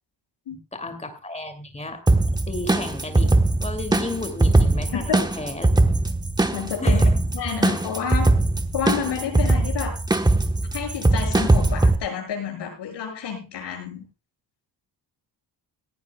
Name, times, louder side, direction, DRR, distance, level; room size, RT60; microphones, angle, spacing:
voice 1, 0.7-2.0 2.5-5.7 6.8-7.1, left 2 dB, 15° left, 7 dB, 2.5 m, -33 dB
sound 1, 2.1-11.9, right 2 dB, 10° right, 1.1 m, -20 dB
voice 2, 6.5-8.4 8.7-10.0 10.7-14.0, left 7 dB, 70° left, 1 dB, 7.8 m, -29 dB
18.5 x 16.0 x 2.3 m, 0.29 s
wide cardioid pair, 175°, 43 cm